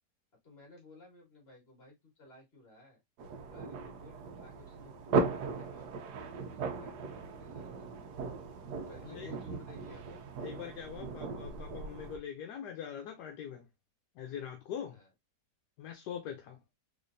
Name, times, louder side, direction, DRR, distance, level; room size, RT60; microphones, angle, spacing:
voice 1, 0.4-3.0 3.5-8.0 8.6-10.2 14.9-15.1, left 3 dB, 35° left, 2.0 m, -56 dB
sound 1, 3.2-12.2, right 4 dB, 75° right, 1.3 m, -37 dB
voice 2, 10.4-13.7 14.2-15.0 15.8-16.6, left 8 dB, 75° left, 1.2 m, -42 dB
3.7 x 3.2 x 2.5 m
omnidirectional pair, 1.8 m